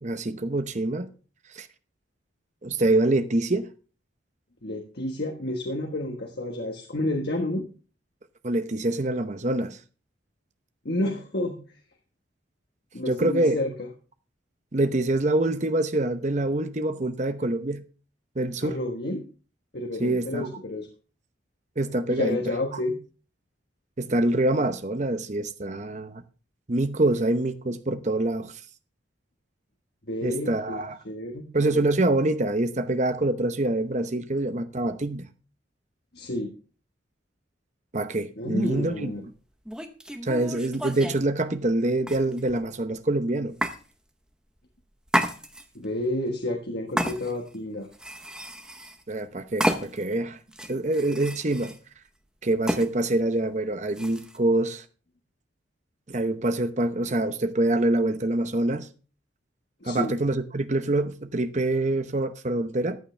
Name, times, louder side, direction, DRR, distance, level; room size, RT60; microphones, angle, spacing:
voice 1, 0.0-1.1 1.5-1.7 2.6-3.7 8.4-9.8 13.1-13.6 14.7-17.8 18.4-18.8 20.0-20.5 21.8-22.4 24.0-26.2 26.7-28.6 30.2-31.0 31.5-35.3 37.9-39.1 40.2-43.6 49.1-50.4 50.7-51.8 52.4-54.8 56.1-58.9 59.9-63.0, right 2 dB, 35° right, 0.8 m, -25 dB
voice 2, 4.6-7.7 10.8-11.6 12.9-13.9 18.6-19.2 19.7-20.9 22.1-23.0 30.1-30.8 31.0-31.5 36.1-36.5 38.4-39.2 45.7-47.9 59.8-60.1, left 1 dB, 55° left, 1.4 m, -30 dB
sound 1, 38.7-38.9 39.7-41.2 42.0-42.6 43.6-43.8 45.1-45.8 47.0-47.6 47.9-49.0 49.6-50.1 50.5-51.8 52.7-52.9 53.9-54.4, equal, 5° right, 0.9 m, -30 dB
14.0 x 9.7 x 3.4 m
head